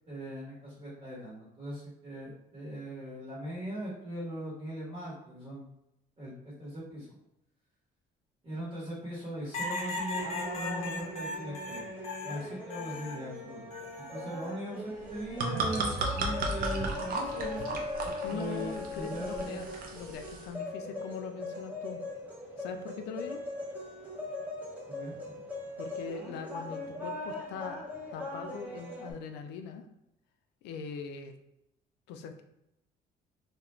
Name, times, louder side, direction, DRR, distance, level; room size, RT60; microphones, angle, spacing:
voice 1, 0.1-5.6 6.2-7.1 8.4-11.9 12.2-17.8 18.0-19.7 24.9-25.4, right 1 dB, 35° right, -7 dB, 1.1 m, -40 dB
sound 1, 9.5-13.2 13.7-14.5 15.9-16.3, left 2 dB, 40° left, 0.6 m, -38 dB
sound 2, 10.1-29.1, left 2 dB, 10° right, 0.7 m, -40 dB
sound 3, 15.0-20.5, right 2 dB, 60° right, 0.5 m, -35 dB
voice 2, 18.2-22.0 22.6-23.4 25.8-27.8 28.1-29.9 30.6-31.3 32.1-32.4, left 6 dB, 85° left, 6 dB, 0.4 m, -41 dB
2.4 x 2.1 x 3.0 m, 0.84 s
cardioid pair, 110°, 17 cm